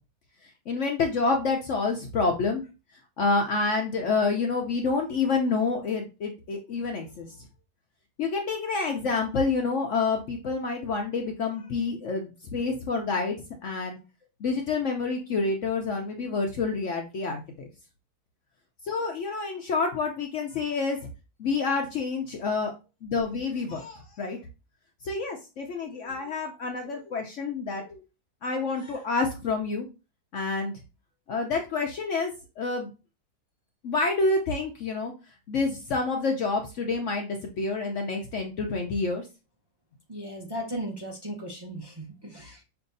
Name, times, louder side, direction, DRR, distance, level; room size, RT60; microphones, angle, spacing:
voice 1, 0.7-2.6 3.2-7.3 8.2-14.0 14.4-17.7 18.9-21.0 21.4-22.7 23.0-24.4 25.0-28.0 28.4-29.8 30.3-30.7 31.3-32.9 33.8-35.1 35.5-39.2, left 4 dB, 60° left, 2 dB, 0.9 m, -28 dB
voice 2, 40.1-42.6, equal, 20° right, -1 dB, 0.9 m, -36 dB
5.6 x 2.7 x 2.6 m, 0.29 s
omnidirectional pair, 1.7 m